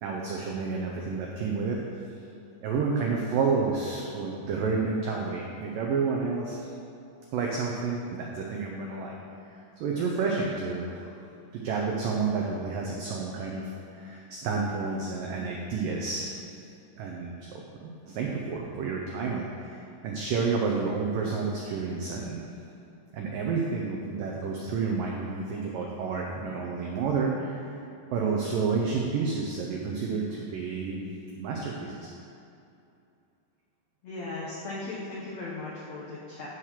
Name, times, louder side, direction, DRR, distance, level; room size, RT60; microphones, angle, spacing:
voice 1, 0.0-1.8 2.6-6.6 7.3-9.2 9.8-10.9 11.5-16.3 17.0-22.4 23.1-27.6 28.1-31.0 31.4-32.1, right 4 dB, 90° right, -1 dB, 1.9 m, -30 dB
voice 2, 34.0-36.5, left 2 dB, 80° left, -6 dB, 1.5 m, -37 dB
14.5 x 5.0 x 5.7 m, 2.6 s
omnidirectional pair, 5.1 m